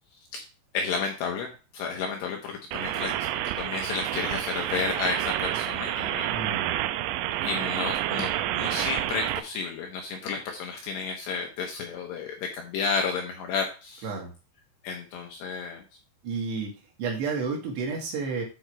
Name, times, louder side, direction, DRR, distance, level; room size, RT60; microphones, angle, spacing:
voice 1, 0.7-1.5 1.7-3.1 3.6-6.3 7.4-14.1 14.8-15.8, left 5 dB, 70° left, 2 dB, 2.7 m, -32 dB
sound 1, 2.7-9.4, right 13 dB, 85° right, 3.3 m, -29 dB
voice 2, 6.3-6.7 14.0-14.3 16.2-16.7 17.0-18.4, right 4 dB, 65° right, 0 dB, 3.6 m, -31 dB
9.4 x 4.7 x 4.6 m, 0.32 s
omnidirectional pair, 5.9 m